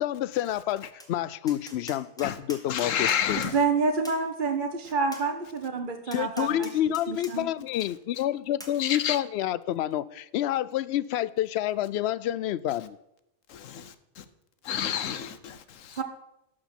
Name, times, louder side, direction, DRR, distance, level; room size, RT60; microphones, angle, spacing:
voice 1, 0.0-3.4 6.1-13.0, left 12 dB, 65° left, 0.7 m, -28 dB
Tap, 1.0-1.1 1.5-3.6 4.0-4.2 5.1-5.3 6.1-7.3 7.8-7.9 8.6-8.8, equal, 5° left, 1.7 m, -44 dB
voice 2, 2.7-3.6 8.8-9.2 13.5-14.2 14.6-16.0, left 9 dB, 85° left, 1.2 m, -30 dB
voice 3, 3.5-6.7 7.1-7.5 16.0-16.1, right 4 dB, 45° right, 1.0 m, -28 dB
12.0 x 6.5 x 7.1 m
omnidirectional pair, 1.3 m